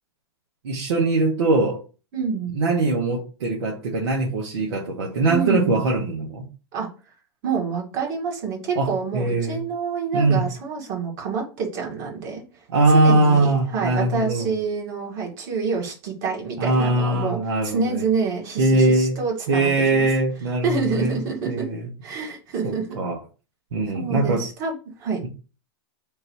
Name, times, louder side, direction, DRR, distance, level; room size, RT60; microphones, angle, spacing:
voice 1, 0.6-1.8 2.5-6.4 8.7-9.6 10.1-10.5 12.7-14.5 16.6-18.0 18.6-19.2 19.5-21.2 21.5-21.8 22.6-23.2 23.7-24.4, right 2 dB, 85° right, -2 dB, 1.2 m, -21 dB
voice 2, 2.1-2.6 5.3-5.8 6.7-6.9 7.4-12.6 12.9-20.0 20.6-21.7 22.0-23.0 23.9-25.2, right 5 dB, 50° right, -1 dB, 2.0 m, -27 dB
3.7 x 2.8 x 4.6 m, 0.33 s
hypercardioid pair, 140°, 14 cm